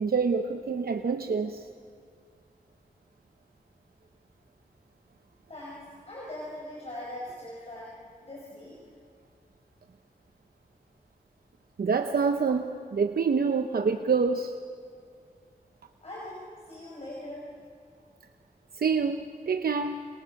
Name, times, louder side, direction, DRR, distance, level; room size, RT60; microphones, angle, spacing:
voice 1, 0.0-1.6 11.8-14.5 18.7-20.0, right 5 dB, 85° right, 6 dB, 0.9 m, -26 dB
voice 2, 5.5-8.8 16.0-17.5, left 1 dB, 45° left, -4 dB, 5.6 m, -41 dB
29.5 x 27.5 x 5.9 m, 2.2 s
wide cardioid pair, 65°, 15 cm